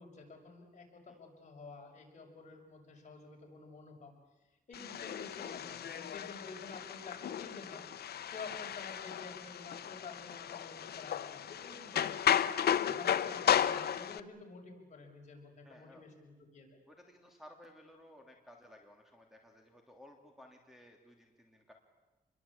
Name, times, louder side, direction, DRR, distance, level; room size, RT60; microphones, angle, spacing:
voice 1, 0.0-4.1 4.7-7.9 8.2-12.3 12.8-16.8, left 4 dB, 50° left, 1 dB, 6.3 m, -50 dB
sound 1, 4.7-14.2, left 9 dB, 80° left, 0.9 m, -34 dB
voice 2, 15.6-16.0 16.9-21.7, left 1 dB, ahead, 3 dB, 2.9 m, -57 dB
27.5 x 22.0 x 8.5 m, 1.1 s
wide cardioid pair, 140°, 16 cm